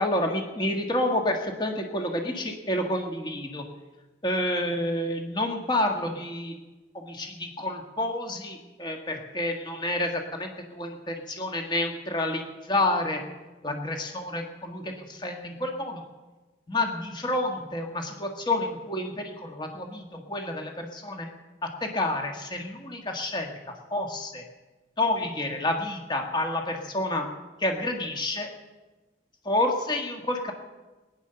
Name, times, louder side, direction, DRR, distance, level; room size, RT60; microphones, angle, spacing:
voice 1, 0.0-3.6 4.2-6.6 6.9-13.2 13.6-16.0 16.7-21.3 21.6-24.4 25.0-27.3 27.6-28.5 29.5-30.5, left 1 dB, 25° left, 3 dB, 1.6 m, -29 dB
19.0 x 10.0 x 6.8 m, 1.2 s
head